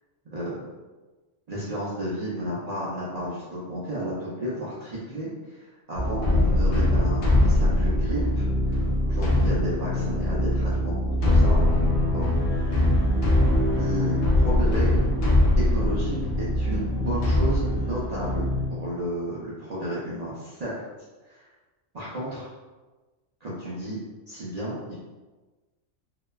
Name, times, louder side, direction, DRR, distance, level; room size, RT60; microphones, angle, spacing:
voice 1, 0.3-0.6 1.5-11.6 12.1-12.7 13.7-14.2 14.4-15.0 15.6-20.8 21.2-21.4 21.9-22.5 23.4-24.0 24.3-24.9, equal, 60° right, -8 dB, 0.4 m, -32 dB
sound 1, 5.9-18.7, left 1 dB, 60° left, 0.7 m, -22 dB
2.9 x 2.0 x 2.2 m, 1.2 s
omnidirectional pair, 1.3 m